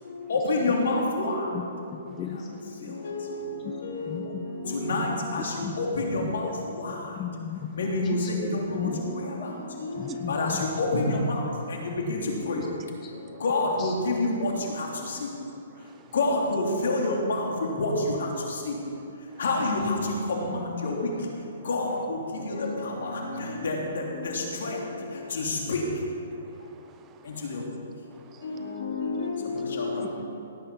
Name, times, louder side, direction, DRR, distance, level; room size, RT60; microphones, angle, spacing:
voice 1, 0.0-1.6 2.1-7.2 7.7-12.6 13.1-15.3 15.8-18.9 19.2-25.9 27.2-27.7 28.2-30.1, left 2 dB, 70° left, -1 dB, 3.1 m, -29 dB
voice 2, 1.5-3.0 3.6-3.7 4.0-4.4 5.6-5.8 6.2-6.5 6.9-9.5 10.0-10.7 11.8-12.0 12.5-12.7 13.8-13.9, left 7 dB, 25° left, 3 dB, 1.0 m, -36 dB
voice 3, 11.1-11.5 13.3-13.4 15.7-16.1 19.3-19.4 25.3-25.4 26.3-27.4 28.1-28.8 30.0-30.1, right 10 dB, 25° right, 8 dB, 0.8 m, -45 dB
17.0 x 9.7 x 5.6 m, 2.7 s
hypercardioid pair, 135°, 0 cm